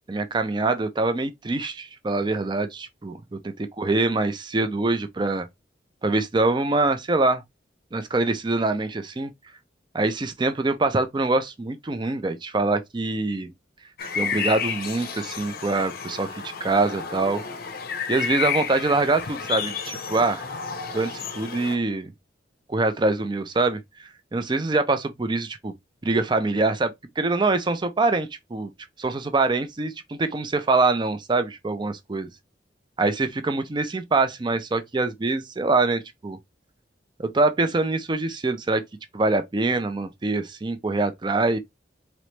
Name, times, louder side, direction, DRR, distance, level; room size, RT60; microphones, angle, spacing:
voice 1, 0.1-5.5 6.0-7.4 7.9-9.3 9.9-13.5 14.2-17.4 18.1-20.5 20.9-22.1 22.7-23.8 24.3-25.8 26.0-28.7 29.0-32.3 33.0-36.4 37.2-38.8 39.1-41.6, right 3 dB, 25° right, 0.4 m, -24 dB
sound 1, 14.0-21.8, left 7 dB, 55° left, 0.6 m, -31 dB
3.0 x 3.0 x 3.2 m
head